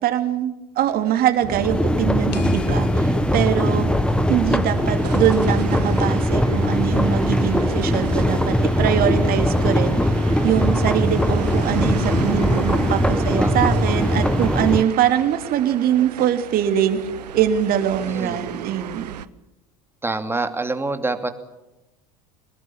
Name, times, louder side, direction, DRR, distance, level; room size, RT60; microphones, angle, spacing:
voice 1, 0.0-3.9 4.3-10.0 10.4-17.0 17.3-19.1, right 10 dB, 45° right, 8 dB, 3.0 m, -22 dB
sound 1, 0.8-19.3, right 11 dB, 80° right, 1.0 m, -35 dB
sound 2, 1.4-14.8, equal, 5° left, 1.5 m, -20 dB
sound 3, 2.3-5.2, left 7 dB, 80° left, 2.4 m, -40 dB
voice 2, 13.1-13.5 18.1-18.4 20.0-21.3, right 3 dB, 10° right, 8 dB, 2.8 m, -27 dB
24.5 x 20.5 x 7.3 m, 0.98 s
hypercardioid pair, 80°, 21 cm